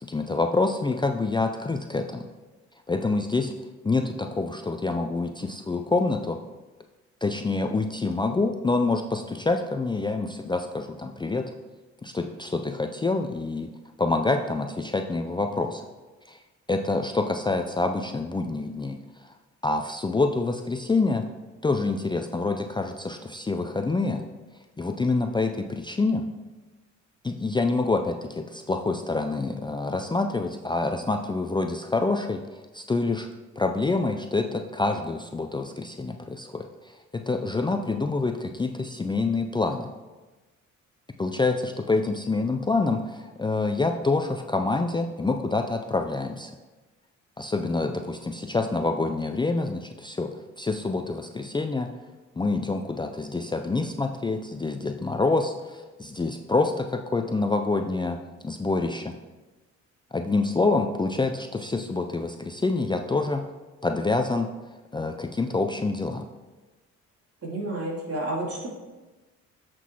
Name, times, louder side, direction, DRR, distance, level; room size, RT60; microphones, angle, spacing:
voice 1, 0.0-2.3 2.9-3.5 3.8-6.4 7.2-11.5 12.0-13.7 14.0-15.8 16.3-16.4 16.7-19.0 19.2-19.3 19.6-21.3 21.6-24.2 24.8-26.3 27.2-33.3 33.6-39.9 41.2-46.5 47.4-51.9 52.4-58.2 58.4-59.1 60.1-63.4 63.8-64.5 64.9-66.2, left 3 dB, 15° left, 5 dB, 0.5 m, -26 dB
voice 2, 67.4-68.7, right 1 dB, 50° right, -3 dB, 3.0 m, -30 dB
8.2 x 6.1 x 4.6 m, 1.2 s
cardioid pair, 90°, 30 cm